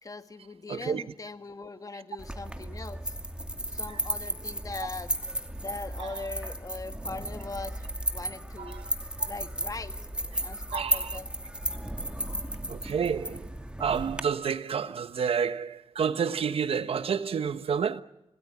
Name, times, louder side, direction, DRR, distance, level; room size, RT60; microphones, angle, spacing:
voice 1, 0.0-3.2 3.7-5.1 5.6-7.8 8.1-8.9 9.3-10.0 10.4-11.3, left 3 dB, 35° left, 1.8 m, -40 dB
voice 2, 0.7-1.1 1.9-2.0 3.9-4.0 6.0-6.2 8.6-8.9 9.2-9.3 10.3-10.4 10.7-11.2 12.7-13.5 13.8-18.0, right 7 dB, 75° right, 1.2 m, -30 dB
sound 1, 2.2-14.2, right 1 dB, 10° right, 2.5 m, -34 dB
26.5 x 19.0 x 9.8 m
cardioid pair, 85°, 10 cm